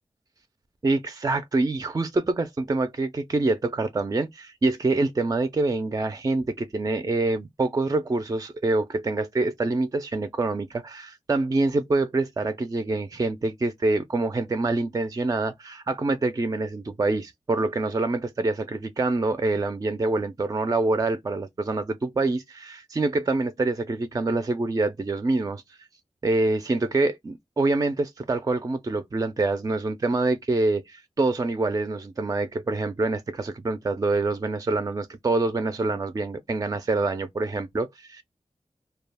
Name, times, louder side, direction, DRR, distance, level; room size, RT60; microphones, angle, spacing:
voice 1, 0.8-25.6 26.2-38.2, right 2 dB, 30° right, 0.4 m, -26 dB
2.3 x 2.1 x 3.3 m
wide cardioid pair, 70°, 11 cm